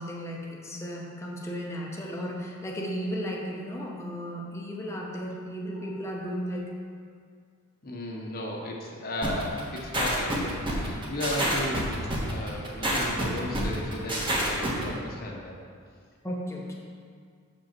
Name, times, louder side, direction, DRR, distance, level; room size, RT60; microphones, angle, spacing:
voice 1, 0.0-6.7 16.2-16.7, equal, 15° left, -2 dB, 0.8 m, -34 dB
voice 2, 7.8-11.9 12.2-15.6, left 1 dB, 45° left, -1 dB, 1.0 m, -35 dB
sound 1, 9.2-14.8, right 1 dB, 25° right, 1.3 m, -28 dB
6.4 x 5.3 x 5.8 m, 2.1 s
head